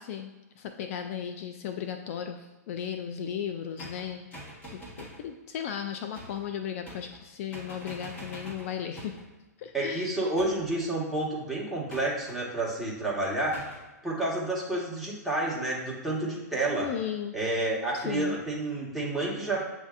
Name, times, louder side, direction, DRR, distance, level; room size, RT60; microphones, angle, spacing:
voice 1, 0.0-4.3 4.7-9.2 9.6-10.2 16.7-17.4 17.9-18.4, left 8 dB, 55° left, 7 dB, 0.3 m, -36 dB
pinball-flipper hits, 3.8-5.3 6.1-6.5 6.8-7.3 7.5-9.3 10.4-10.8 11.9-12.4 13.5-13.9, equal, 20° left, 1.4 m, -45 dB
voice 2, 9.7-13.6 14.0-16.9 17.3-19.6, right 2 dB, ahead, -7 dB, 1.4 m, -30 dB
7.9 x 2.6 x 2.5 m, 1.1 s
hypercardioid pair, 130°, 9 cm